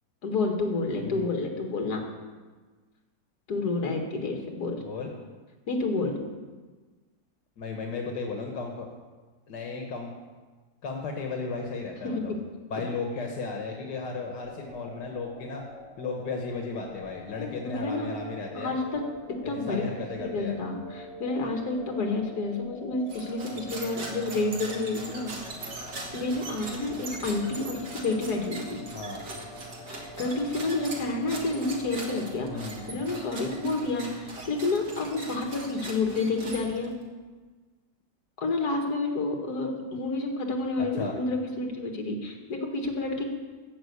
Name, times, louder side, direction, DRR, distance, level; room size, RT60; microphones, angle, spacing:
voice 1, 0.2-2.0 3.5-4.8 5.7-6.2 12.0-12.2 17.4-17.5 17.8-18.1 18.5-19.0 19.5-19.8 20.2-25.5 26.1-28.8 29.9-36.9 38.4-43.2, left 3 dB, 70° left, 2 dB, 2.1 m, -29 dB
voice 2, 4.8-5.1 7.6-8.9 9.5-10.1 10.8-12.3 12.7-15.6 16.0-18.7 19.4-20.6 28.9-29.2 32.5-32.8 40.8-41.1, left 4 dB, 85° left, 2 dB, 1.8 m, -35 dB
sound 1, 14.4-33.7, left 1 dB, 20° left, 1.3 m, -46 dB
sound 2, 23.1-37.0, right 2 dB, 80° right, 2.3 m, -41 dB
14.0 x 5.3 x 8.1 m, 1.3 s
omnidirectional pair, 1.8 m